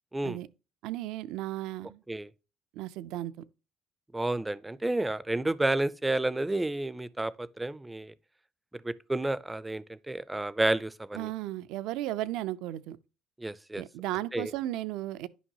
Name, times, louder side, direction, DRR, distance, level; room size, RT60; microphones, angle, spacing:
voice 1, 0.8-2.0 2.7-3.5 11.1-13.0 13.7-15.3, right 15 dB, 80° right, 0.4 m, -35 dB
voice 2, 4.1-8.1 8.7-11.3 13.4-13.8 14.3-14.5, right 2 dB, 10° right, 0.3 m, -30 dB
9.9 x 5.3 x 2.8 m
cardioid pair, 125°, 0 cm